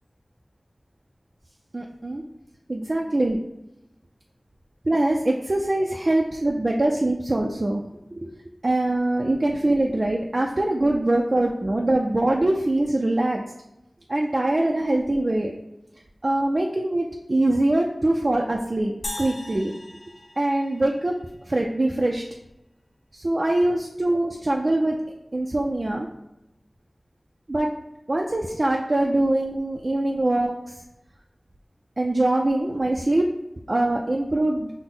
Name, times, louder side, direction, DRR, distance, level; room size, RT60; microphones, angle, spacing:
voice 1, 1.7-2.2 2.7-3.4 4.8-7.8 8.2-8.3 8.6-13.4 14.1-15.5 16.2-19.7 20.4-21.1 21.5-22.2 23.1-25.0 25.3-26.1 27.5-27.7 28.1-30.8 32.0-33.2 33.7-34.7, right 1 dB, 55° right, 0 dB, 0.4 m, -23 dB
sound 1, 19.0-21.5, left 1 dB, 70° left, 0.9 m, -38 dB
5.9 x 2.1 x 3.7 m, 0.90 s
wide cardioid pair, 55°, 0 cm